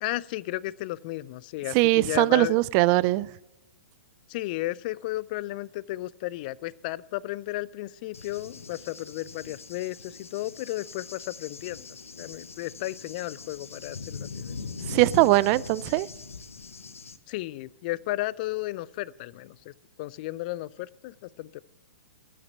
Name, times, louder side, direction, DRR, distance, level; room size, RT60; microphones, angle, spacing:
voice 1, 0.0-2.6 4.3-11.9 12.2-14.6 17.3-19.7 20.0-21.6, left 17 dB, 40° left, 23 dB, 0.3 m, -34 dB
voice 2, 1.7-3.3 14.9-16.1, right 20 dB, 35° right, 21 dB, 0.4 m, -21 dB
Cricket / Thunder, 8.1-17.2, left 4 dB, 80° left, 0.9 m, -41 dB
13.0 x 6.7 x 7.3 m, 0.97 s
hypercardioid pair, 120°, 7 cm